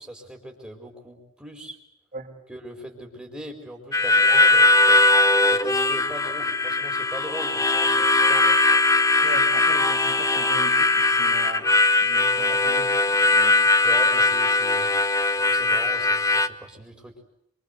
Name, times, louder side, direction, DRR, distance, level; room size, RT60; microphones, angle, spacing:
voice 1, 0.0-1.8 2.5-5.0 5.4-8.5 13.8-14.9 15.3-17.1, right 1 dB, 5° right, 1 dB, 4.5 m, -39 dB
Harmonica, 3.9-16.5, left 2 dB, 15° left, 1.1 m, -20 dB
voice 2, 9.2-11.7 12.0-13.6, right 2 dB, 35° right, -1 dB, 5.1 m, -39 dB
27.5 x 25.5 x 8.2 m, 0.76 s
head